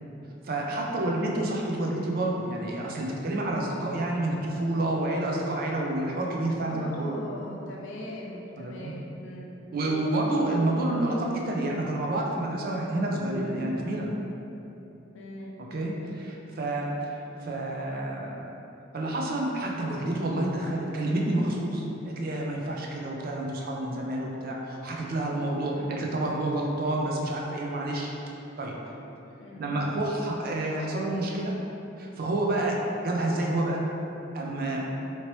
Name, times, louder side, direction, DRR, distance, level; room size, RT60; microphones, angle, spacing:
voice 1, 0.4-7.2 8.6-8.9 9.7-14.1 15.6-18.4 18.9-28.1 28.6-28.8 29.6-31.6 32.0-32.8 33.0-33.8 34.3-34.8, right 1 dB, 50° right, -1 dB, 0.4 m, -29 dB
voice 2, 6.7-9.5 15.1-15.6 25.6-25.9 29.4-29.8 32.5-32.8, left 1 dB, 75° left, -2 dB, 0.5 m, -41 dB
2.9 x 2.8 x 3.0 m, 2.9 s
head